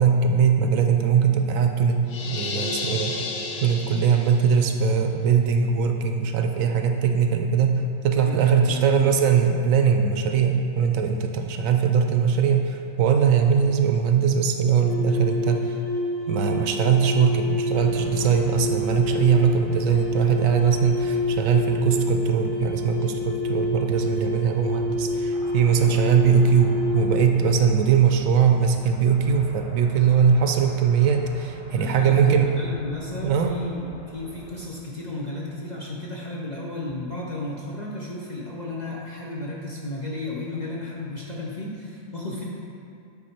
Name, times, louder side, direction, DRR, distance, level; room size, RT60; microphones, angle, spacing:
voice 1, 0.0-3.1 3.6-15.7 16.3-32.5 33.2-33.5, right 6 dB, 75° right, 5 dB, 0.9 m, -21 dB
sound 1, 2.1-4.6, left 4 dB, 90° left, 1.2 m, -32 dB
voice 2, 8.2-9.2 25.8-26.0 31.8-42.4, left 2 dB, 40° left, -4 dB, 0.7 m, -33 dB
sound 2, 14.8-27.5, left 2 dB, 25° left, 1.3 m, -28 dB
sound 3, 17.7-34.7, right 1 dB, 25° right, 0.9 m, -43 dB
9.0 x 4.1 x 4.3 m, 2.5 s
omnidirectional pair, 1.5 m